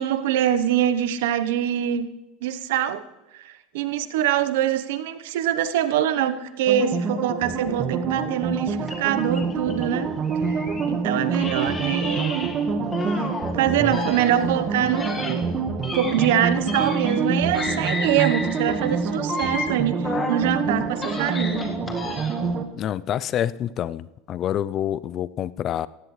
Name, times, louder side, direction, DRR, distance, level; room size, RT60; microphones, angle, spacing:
voice 1, 0.0-2.1 2.4-3.0 3.3-10.1 10.9-12.5 13.1-13.3 13.5-15.5 15.9-21.7, right 10 dB, 75° right, 11 dB, 0.9 m, -24 dB
sound 1, 6.7-22.6, right 4 dB, 35° right, 1.5 m, -27 dB
sound 2, 8.8-10.9 11.3-13.5 13.9-17.3 17.5-20.5 20.8-22.5, left 3 dB, 20° left, 1.8 m, -33 dB
voice 2, 22.8-25.9, left 10 dB, 40° left, 18 dB, 0.5 m, -27 dB
17.5 x 15.5 x 3.3 m, 0.96 s
supercardioid pair, 115°, 0 cm